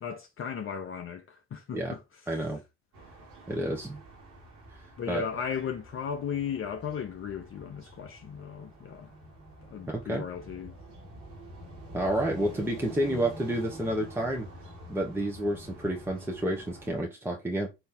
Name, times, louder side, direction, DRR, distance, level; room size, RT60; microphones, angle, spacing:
voice 1, 0.0-2.0 5.0-9.1 9.6-10.7, left 7 dB, 40° left, 0.6 m, -36 dB
voice 2, 2.3-2.6 3.5-4.0 5.1-5.4 9.9-10.2 11.9-14.5 14.9-17.7, right 1 dB, 5° right, 0.9 m, -30 dB
sound 1, 2.9-17.0, equal, 70° right, 1.9 m, -47 dB
4.3 x 2.7 x 3.8 m
hypercardioid pair, 55°, 34 cm